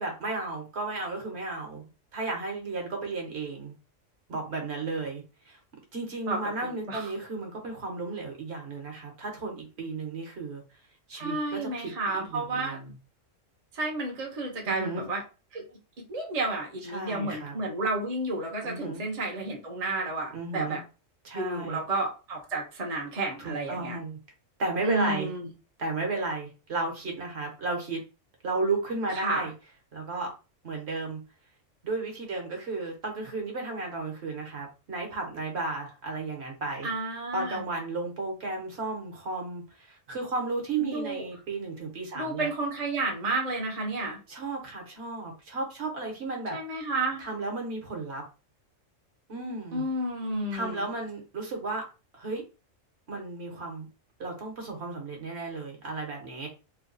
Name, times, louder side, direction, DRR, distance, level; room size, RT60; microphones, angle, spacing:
voice 1, 0.0-3.7 4.3-5.6 5.9-10.6 11.1-12.9 14.6-15.0 16.9-17.5 18.6-19.0 20.3-20.8 21.2-21.8 23.4-24.2 24.6-25.3 25.8-28.0 28.4-29.5 29.9-30.3 30.6-31.2 31.8-36.9 37.3-42.5 44.3-46.6 47.2-48.2 49.3-49.8 50.5-51.8 52.1-52.4 53.1-53.9 54.2-56.5, right 3 dB, 55° right, 2 dB, 1.2 m, -34 dB
voice 2, 6.3-7.1 11.2-12.8 13.7-15.2 15.5-15.7 16.1-20.8 21.3-24.0 24.8-25.5 29.1-29.5 36.8-37.6 40.8-41.3 42.1-44.2 46.5-47.2 49.7-50.9, right 2 dB, 35° right, 0 dB, 0.8 m, -31 dB
3.2 x 2.3 x 3.9 m, 0.31 s
omnidirectional pair, 1.3 m